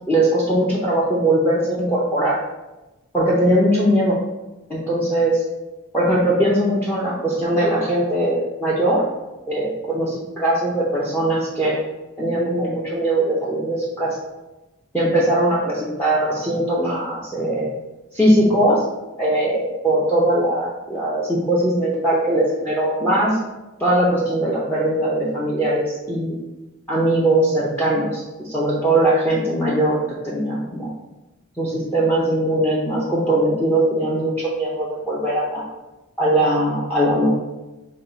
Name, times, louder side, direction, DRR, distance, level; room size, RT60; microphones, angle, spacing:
voice 1, 0.1-2.4 3.1-4.2 4.7-5.4 5.9-9.0 9.5-11.7 12.2-14.2 14.9-17.7 18.1-18.8 19.2-23.4 23.8-26.4 26.9-30.0 30.2-30.9 31.6-35.6 36.2-37.3, right 1 dB, 10° left, -6 dB, 0.6 m, -20 dB
5.8 x 2.3 x 3.9 m, 1.0 s
head